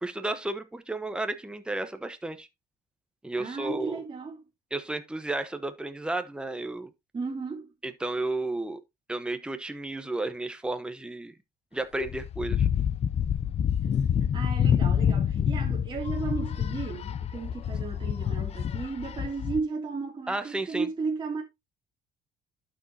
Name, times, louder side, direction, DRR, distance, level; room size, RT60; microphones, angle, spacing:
voice 1, 0.0-2.5 3.2-4.0 4.7-6.9 7.8-8.8 9.1-11.3 11.7-12.7 20.3-20.9, right 2 dB, 5° right, 1.0 m, -32 dB
voice 2, 3.4-4.4 7.1-7.7 13.8-21.4, right 4 dB, 30° right, 2.6 m, -34 dB
sound 1, 12.0-19.6, left 8 dB, 40° left, 0.5 m, -27 dB
11.5 x 6.5 x 2.8 m
cardioid pair, 110°, 17 cm